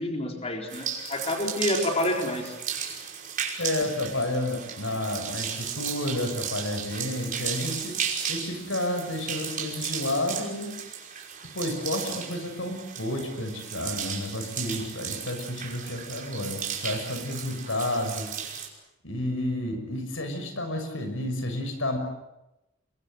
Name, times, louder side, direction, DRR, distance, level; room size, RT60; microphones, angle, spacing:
voice 1, 0.0-2.5, left 1 dB, 30° left, 2 dB, 4.1 m, -28 dB
sound 1, 0.7-18.7, right 8 dB, 45° right, 5.6 m, -35 dB
voice 2, 3.6-7.9 8.3-10.7 11.4-18.3 19.0-22.0, left 1 dB, 85° left, 7 dB, 6.4 m, -31 dB
30.0 x 23.0 x 8.1 m, 0.93 s
head